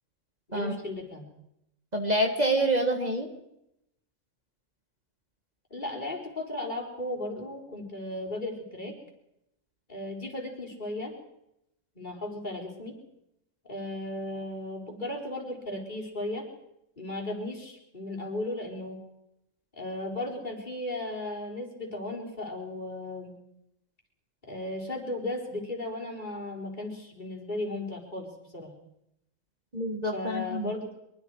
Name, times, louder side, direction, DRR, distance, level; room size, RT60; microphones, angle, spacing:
voice 1, 0.5-1.3 5.7-9.0 9.9-11.1 11.9-13.0 13.7-16.5 17.0-19.0 19.7-23.3 24.4-28.3 28.5-28.7 30.1-30.9, left 1 dB, 35° left, -1 dB, 4.4 m, -35 dB
voice 2, 1.9-3.3 29.7-30.7, right 1 dB, 35° right, 3 dB, 1.8 m, -27 dB
23.5 x 23.5 x 4.8 m, 0.81 s
omnidirectional pair, 1.3 m